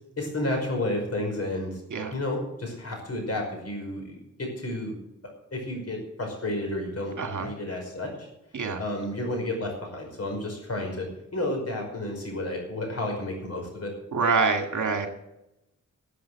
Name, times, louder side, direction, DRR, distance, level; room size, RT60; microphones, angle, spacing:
voice 1, 0.2-1.8 2.1-4.9 5.5-7.1 7.4-8.3 8.8-13.9, left 1 dB, 55° left, 1 dB, 5.4 m, -31 dB
voice 2, 7.2-7.5 8.5-8.8 14.1-15.1, right 4 dB, 80° right, 5 dB, 2.1 m, -25 dB
13.5 x 7.7 x 7.5 m, 0.87 s
wide cardioid pair, 135°, 30 cm